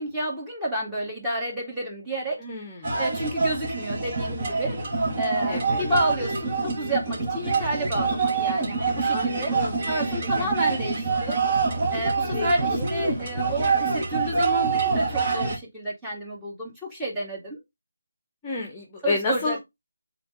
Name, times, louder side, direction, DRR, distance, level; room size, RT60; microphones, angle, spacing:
voice 1, 0.0-2.4 3.0-4.8 5.2-9.6 9.9-11.4 11.9-17.6 19.0-19.6, right 1 dB, 5° right, 2.4 m, -30 dB
voice 2, 2.4-3.0 5.5-5.9 9.1-9.9 10.4-10.8 12.3-12.9 18.4-19.6, left 3 dB, 15° left, 1.2 m, -31 dB
sound 1, 2.8-15.6, right 4 dB, 30° right, 2.7 m, -26 dB
7.6 x 4.0 x 3.8 m
figure-of-eight pair, 155°, 0 cm